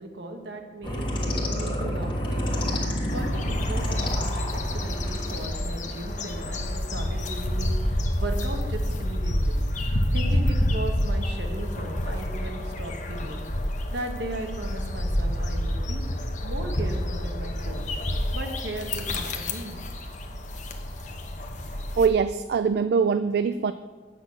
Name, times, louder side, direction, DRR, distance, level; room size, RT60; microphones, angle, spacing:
voice 1, 0.0-2.7 3.1-9.6 10.1-13.5 13.9-16.0 16.4-17.9 18.3-19.8, right 1 dB, 80° right, 4 dB, 1.3 m, -37 dB
sound 1, 0.8-6.8, equal, 30° left, 1.3 m, -29 dB
sound 2, 3.1-22.1, left 1 dB, 45° left, 0.9 m, -28 dB
voice 2, 22.0-23.7, right 6 dB, 65° right, 12 dB, 0.3 m, -23 dB
8.1 x 6.0 x 7.9 m, 1.4 s
head